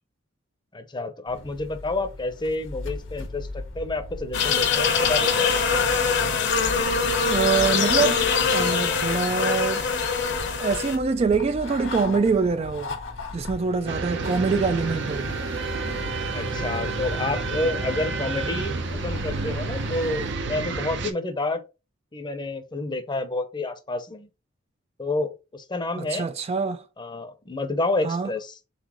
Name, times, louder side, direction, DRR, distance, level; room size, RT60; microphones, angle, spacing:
voice 1, 0.7-5.5 16.3-21.6 22.1-24.3 25.0-26.3 27.0-28.5, left 2 dB, 25° left, 0.7 m, -29 dB
sound 1, 1.3-20.3, left 2 dB, 85° left, 1.3 m, -38 dB
sound 2, 4.3-11.0, left 5 dB, 65° left, 0.9 m, -23 dB
voice 2, 7.3-8.2 8.5-9.9 10.5-13.0 13.3-15.3 25.9-26.8 28.0-28.3, right 5 dB, 30° right, 0.3 m, -24 dB
sound 3, 13.9-21.1, right 3 dB, 65° right, 0.7 m, -30 dB
4.1 x 3.9 x 3.0 m
head